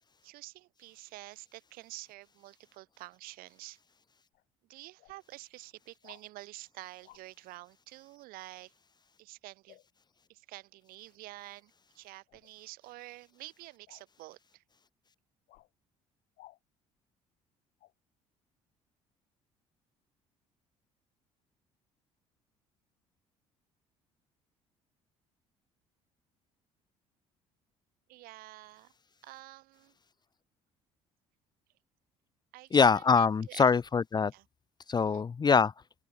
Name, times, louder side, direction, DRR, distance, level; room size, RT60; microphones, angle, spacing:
voice 1, 0.2-3.8 4.7-8.7 9.2-9.8 10.3-14.6 28.1-28.9 29.2-29.9 32.5-33.7 34.3-34.4 35.0-35.3, right 19 dB, 60° right, 3.8 m, -49 dB
sound 1, 4.3-4.4 5.0-5.2 6.0-6.3 7.0-7.2 9.7-9.9 12.3-12.5 13.9-14.1 15.5-15.7 16.4-16.6 17.8-17.9, left 17 dB, 60° left, 7.6 m, -57 dB
voice 2, 32.7-34.3 34.9-35.7, left 5 dB, 25° left, 0.7 m, -24 dB
open air
figure-of-eight pair, 50°, 17 cm